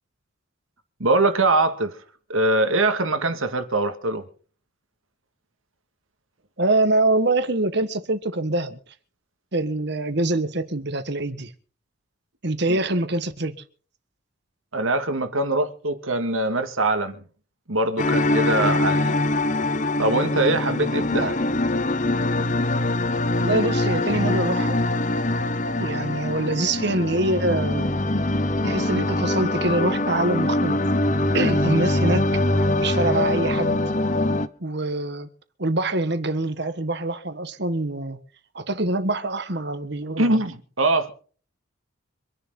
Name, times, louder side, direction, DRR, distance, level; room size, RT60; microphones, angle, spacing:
voice 1, 1.0-2.0 2.3-4.2 12.7-12.8 14.7-17.2 17.7-19.2 20.0-21.4 40.2-41.1, right 2 dB, 75° right, 2.1 m, -22 dB
voice 2, 6.6-8.8 9.5-11.5 12.4-13.5 21.2-21.3 23.3-24.8 25.8-28.1 28.6-30.8 31.3-32.2 32.8-33.8 34.6-35.3 35.6-38.2 38.5-40.3, right 2 dB, 50° right, 1.6 m, -24 dB
sound 1, 18.0-34.5, left 2 dB, 35° left, 0.9 m, -23 dB
26.0 x 11.0 x 4.0 m
head